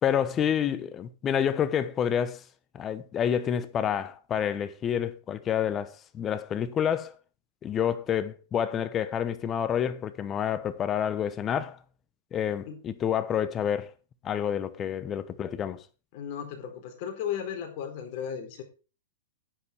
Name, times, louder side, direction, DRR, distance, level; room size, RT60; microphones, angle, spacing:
voice 1, 0.0-2.4 2.7-7.1 7.6-11.8 12.3-13.9 14.2-15.8, left 9 dB, 25° left, 1.1 m, -28 dB
voice 2, 16.1-18.6, left 8 dB, 50° left, 4.2 m, -35 dB
10.5 x 9.7 x 4.6 m
hypercardioid pair, 125°, 0 cm